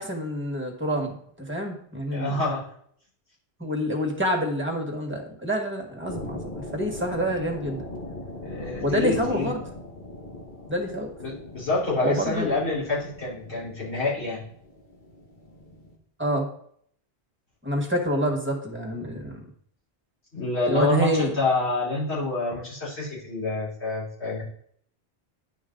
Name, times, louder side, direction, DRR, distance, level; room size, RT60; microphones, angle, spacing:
voice 1, 0.0-2.4 3.6-7.9 8.8-9.6 10.7-11.1 12.0-12.5 16.2-16.5 17.6-19.4 20.7-21.4, equal, 10° right, 1 dB, 1.7 m, -27 dB
voice 2, 2.1-2.6 8.4-9.5 11.2-14.4 20.3-24.4, left 2 dB, 80° left, -9 dB, 4.4 m, -27 dB
sound 1, 6.0-15.9, left 2 dB, 50° left, 1.5 m, -40 dB
10.0 x 5.2 x 3.9 m, 0.64 s
omnidirectional pair, 1.1 m